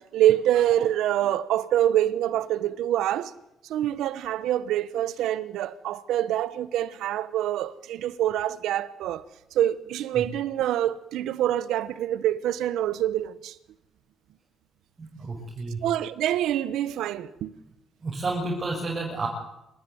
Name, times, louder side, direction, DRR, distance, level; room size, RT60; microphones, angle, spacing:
voice 1, 0.0-3.3 3.7-9.2 9.5-13.6 15.8-17.6, right 12 dB, 85° right, 1.2 m, -25 dB
voice 2, 15.0-15.9 18.0-19.3, right 3 dB, 35° right, 7.1 m, -31 dB
27.0 x 16.5 x 9.6 m
cardioid pair, 90°, 0 cm